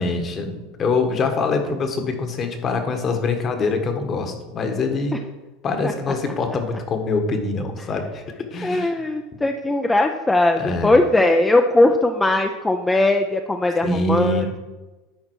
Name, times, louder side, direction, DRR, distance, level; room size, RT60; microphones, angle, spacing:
voice 1, 0.0-5.2 5.6-8.2 8.5-9.1 10.6-11.0 13.8-14.6, left 3 dB, 35° left, 6 dB, 1.3 m, -24 dB
voice 2, 8.6-14.4, left 2 dB, 10° left, 4 dB, 0.5 m, -19 dB
10.5 x 4.3 x 4.6 m, 1.2 s
supercardioid pair, 105°, 0 cm